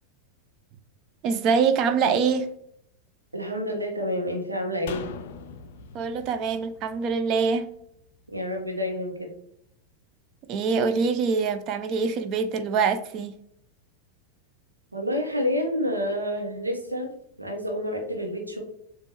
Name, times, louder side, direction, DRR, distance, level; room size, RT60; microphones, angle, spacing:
voice 1, 1.2-2.5 5.9-7.7 10.5-13.3, right 5 dB, 35° right, 0.4 m, -24 dB
voice 2, 3.3-5.1 8.3-9.3 14.9-17.1 17.4-18.6, left 1 dB, 85° right, 1.0 m, -28 dB
sound 1, 4.9-8.2 8.5-8.6, left 5 dB, 55° left, 0.4 m, -42 dB
6.9 x 2.5 x 2.8 m
figure-of-eight pair, 90°, 0 cm